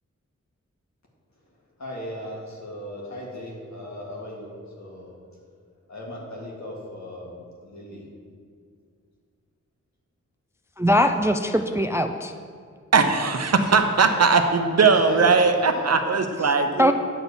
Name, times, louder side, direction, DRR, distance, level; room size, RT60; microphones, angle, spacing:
voice 1, 1.8-5.2 5.9-8.0 11.6-11.8 14.9-15.9 16.7-16.8, left 1 dB, 70° left, -3 dB, 2.0 m, -37 dB
voice 2, 10.8-12.3 16.8-16.9, equal, 10° right, 7 dB, 0.3 m, -21 dB
voice 3, 12.9-16.9, right 4 dB, 60° right, 7 dB, 0.7 m, -19 dB
9.3 x 4.0 x 7.0 m, 2.2 s
wide cardioid pair, 95°, 29 cm